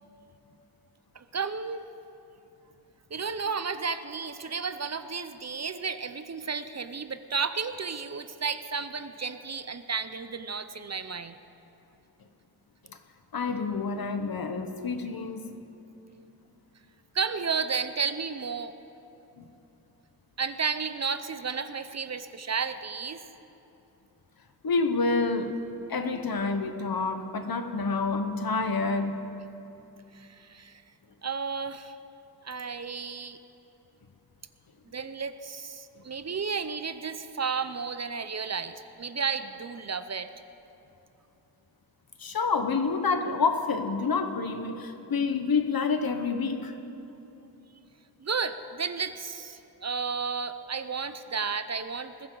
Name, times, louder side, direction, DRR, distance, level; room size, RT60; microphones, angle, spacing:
voice 1, 1.1-1.8 3.1-11.4 17.1-18.7 20.4-23.2 30.1-30.8 31.2-31.9 32.4-33.4 34.9-40.3 48.2-52.3, right 5 dB, 45° right, 11 dB, 0.6 m, -32 dB
voice 2, 13.3-15.5 19.4-19.5 24.6-25.6 25.9-29.2 42.2-46.7, left 4 dB, 65° left, 7 dB, 1.1 m, -28 dB
21.0 x 15.0 x 3.9 m, 2.9 s
wide cardioid pair, 105°, 39 cm